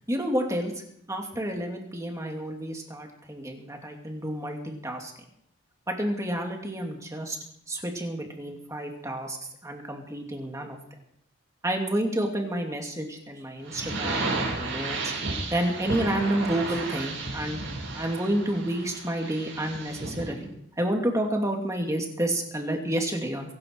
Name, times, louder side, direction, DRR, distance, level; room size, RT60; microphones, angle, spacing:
voice 1, 0.1-0.7 1.1-5.1 5.9-7.4 7.7-9.4 9.6-10.8 11.6-15.1 15.5-17.6 17.9-20.5 20.8-23.5, right 1 dB, 15° right, 2 dB, 2.6 m, -30 dB
sound 1, 13.7-20.3, right 3 dB, 90° right, 5.6 m, -33 dB
24.0 x 11.5 x 4.7 m, 0.71 s
head